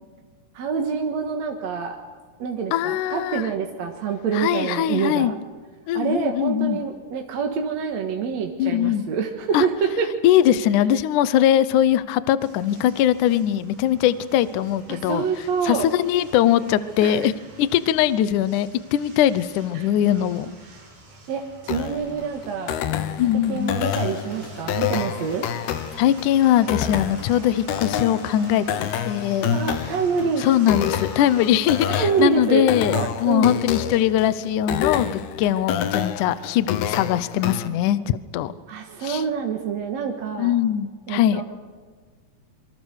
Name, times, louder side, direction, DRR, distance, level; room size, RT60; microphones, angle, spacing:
voice 1, 0.5-2.0 2.4-5.3 5.9-10.1 14.9-15.9 17.0-17.3 19.7-19.9 21.3-22.8 23.5-25.5 29.4-30.5 31.9-33.6 38.7-40.6 41.1-41.4, right 6 dB, 55° right, 2 dB, 2.4 m, -26 dB
voice 2, 2.7-3.5 4.3-5.3 5.9-6.8 8.6-9.0 9.5-9.7 10.2-15.2 15.6-17.3 17.6-20.6 23.2-23.8 26.0-29.5 30.4-33.0 33.2-38.5 39.0-39.2 40.4-41.4, left 11 dB, 70° left, 14 dB, 2.0 m, -21 dB
sound 1, 12.4-32.1, right 2 dB, 85° right, 9.2 m, -46 dB
sound 2, 21.7-37.7, left 9 dB, 90° left, 3.2 m, -28 dB
27.5 x 24.0 x 6.5 m, 1.5 s
omnidirectional pair, 4.3 m